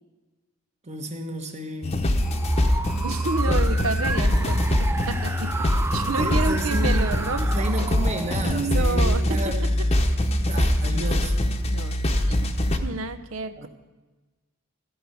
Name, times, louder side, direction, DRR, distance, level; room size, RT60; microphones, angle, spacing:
voice 1, 0.8-2.0 3.5-3.6 6.0-7.1 7.4-9.7 10.4-11.4 13.6-13.7, right 2 dB, 30° right, 4 dB, 1.2 m, -32 dB
sound 1, 1.8-12.8, left 1 dB, 30° left, 0.8 m, -23 dB
sound 2, 2.0-9.2, right 3 dB, 10° right, 0.3 m, -32 dB
voice 2, 3.0-7.9 8.4-9.5 10.9-11.2 11.7-12.0 12.3-12.5 12.8-13.7, right 3 dB, 75° right, 11 dB, 0.8 m, -30 dB
15.0 x 5.6 x 9.6 m, 1.2 s
head